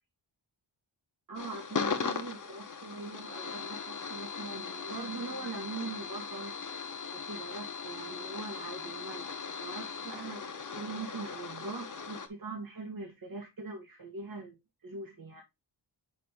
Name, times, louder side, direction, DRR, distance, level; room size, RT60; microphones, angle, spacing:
sound 1, 1.3-12.3, left 5 dB, 45° left, 1.2 m, -38 dB
voice 1, 1.3-6.5 7.1-15.4, right 3 dB, 50° right, 1.7 m, -42 dB
6.3 x 5.2 x 3.5 m
wide cardioid pair, 130°, 44 cm